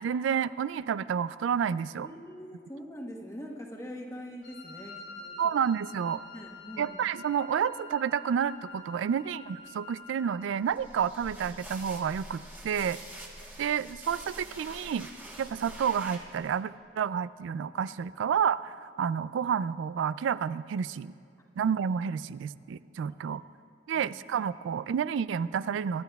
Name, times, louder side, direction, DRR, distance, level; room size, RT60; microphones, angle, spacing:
voice 1, 0.0-2.1 5.4-6.2 6.8-13.0 13.6-15.1 15.4-21.1 21.6-23.4 23.9-26.0, right 7 dB, 85° right, 16 dB, 0.3 m, -30 dB
voice 2, 2.0-5.3 6.3-7.0 17.9-18.0 23.0-23.4 23.9-24.1, equal, 15° left, 0 dB, 1.1 m, -43 dB
Wind instrument woodwind instrument, 4.4-10.5, left 2 dB, 80° left, 2.2 m, -47 dB
sound 1, 10.7-16.6, right 1 dB, 10° right, 1.2 m, -46 dB
24.0 x 11.0 x 2.3 m, 2.4 s
head